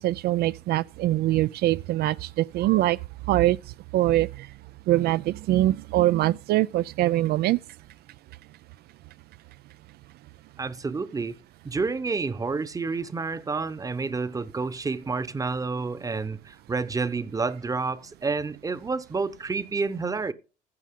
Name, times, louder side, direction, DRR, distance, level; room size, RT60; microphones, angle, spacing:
voice 1, 0.0-3.0 3.3-3.6 3.9-4.5 4.9-7.6, right 15 dB, 70° right, 0.4 m, -23 dB
voice 2, 10.6-11.4 11.6-20.3, right 4 dB, 20° right, 0.9 m, -29 dB
15.5 x 6.1 x 3.7 m
cardioid pair, 110°, 17 cm